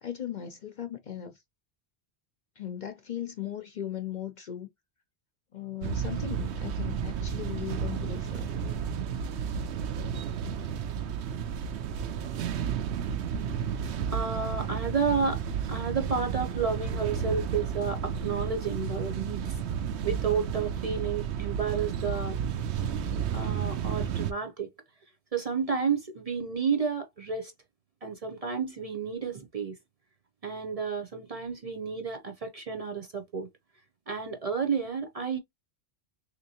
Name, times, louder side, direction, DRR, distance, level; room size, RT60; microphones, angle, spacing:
voice 1, 0.0-1.4 2.6-4.7 5.5-8.5, left 10 dB, 55° left, 0.6 m, -38 dB
sound 1, 5.8-24.3, right 7 dB, 80° right, 0.9 m, -32 dB
voice 2, 14.1-15.4 15.7-19.6 20.0-22.4 23.3-24.7 25.3-27.5 28.0-29.7 30.4-33.5 34.1-35.4, right 5 dB, 40° right, 0.7 m, -31 dB
3.4 x 2.9 x 2.7 m
omnidirectional pair, 1.1 m